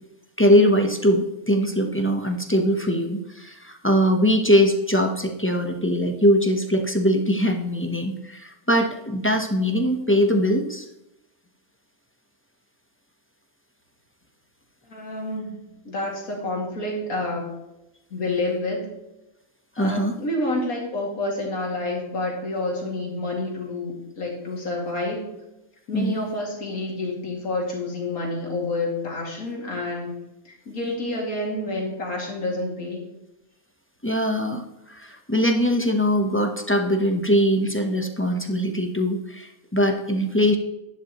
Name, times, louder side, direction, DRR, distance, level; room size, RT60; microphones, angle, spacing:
voice 1, 0.4-10.9 19.8-20.1 25.9-26.3 34.0-34.6 34.9-40.6, equal, 10° left, 4 dB, 0.6 m, -21 dB
voice 2, 14.9-17.5 18.1-18.9 19.8-25.3 25.9-30.1 30.4-33.0, left 2 dB, 70° left, -1 dB, 2.8 m, -29 dB
10.5 x 10.5 x 3.0 m, 0.92 s
omnidirectional pair, 1.5 m